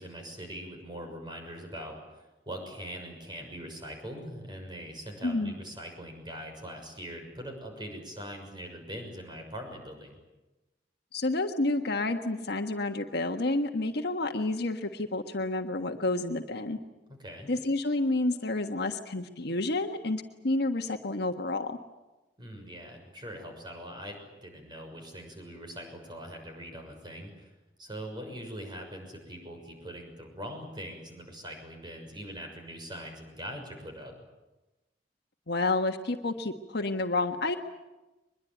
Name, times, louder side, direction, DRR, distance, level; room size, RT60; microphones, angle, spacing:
voice 1, 0.0-10.2 17.1-17.5 22.4-27.5 27.8-34.1, equal, 25° right, 4 dB, 6.4 m, -42 dB
voice 2, 5.2-5.5 11.1-16.8 17.5-21.8 35.5-37.6, left 2 dB, 65° left, 5 dB, 1.5 m, -29 dB
23.0 x 22.0 x 9.2 m, 1.1 s
head